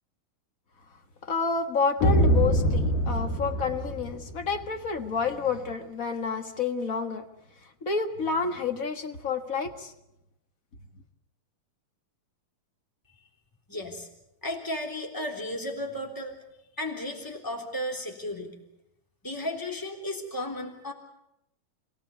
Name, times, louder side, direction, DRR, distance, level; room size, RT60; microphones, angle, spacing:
voice 1, 1.2-7.2 7.8-9.9, left 5 dB, 45° left, 6 dB, 1.0 m, -29 dB
sound 1, 2.0-4.6, equal, 90° left, 4.0 m, -24 dB
voice 2, 13.7-14.1 14.4-16.4 16.8-18.5 19.2-20.9, left 1 dB, 5° left, 2 dB, 3.2 m, -34 dB
28.0 x 17.0 x 8.4 m, 0.84 s
omnidirectional pair, 3.8 m